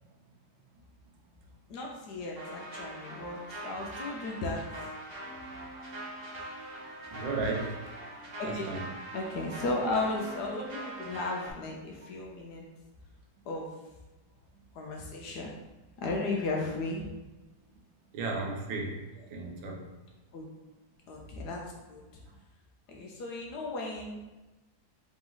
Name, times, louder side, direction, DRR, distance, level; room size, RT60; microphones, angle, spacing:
voice 1, 1.7-4.7 8.4-8.8 9.1-12.7 13.5-13.7 14.7-15.5 16.0-17.1 20.3-20.4 21.1-21.6 21.9-22.0 22.9-24.2, left 2 dB, 70° left, -1 dB, 1.1 m, -35 dB
sound 1, 2.4-11.5, right 1 dB, 50° right, 0.7 m, -42 dB
voice 2, 7.1-7.8 8.4-8.8 18.1-19.0 19.3-19.9, right 3 dB, 80° right, 1 dB, 1.5 m, -34 dB
3.9 x 3.0 x 3.8 m, 1.1 s
omnidirectional pair, 2.1 m